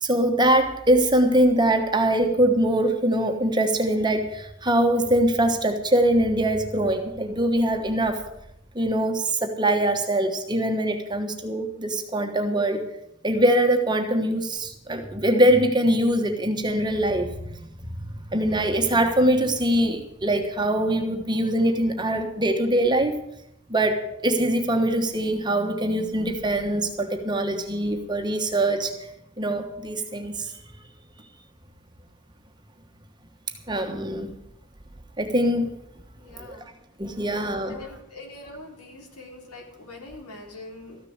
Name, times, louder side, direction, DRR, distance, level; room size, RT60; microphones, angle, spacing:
voice 1, 0.0-8.2 8.7-12.8 13.2-17.3 17.8-18.0 18.3-23.2 23.7-29.0 29.4-30.5 33.7-34.3 35.2-35.7 36.4-36.6 37.0-37.8, right 1 dB, 20° right, 5 dB, 1.2 m, -23 dB
voice 2, 36.2-36.7 37.7-41.0, left 2 dB, 85° left, 0 dB, 3.7 m, -43 dB
14.0 x 6.8 x 9.4 m, 0.81 s
head